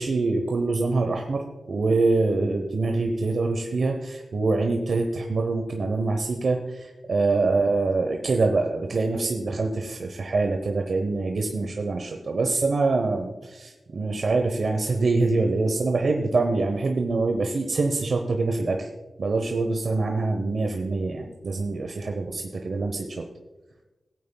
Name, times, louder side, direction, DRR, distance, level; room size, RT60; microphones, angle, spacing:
voice 1, 0.0-18.9 19.2-23.2, right 3 dB, 60° right, 3 dB, 0.9 m, -25 dB
17.5 x 8.8 x 2.3 m, 1.1 s
cardioid pair, 75°, 0 cm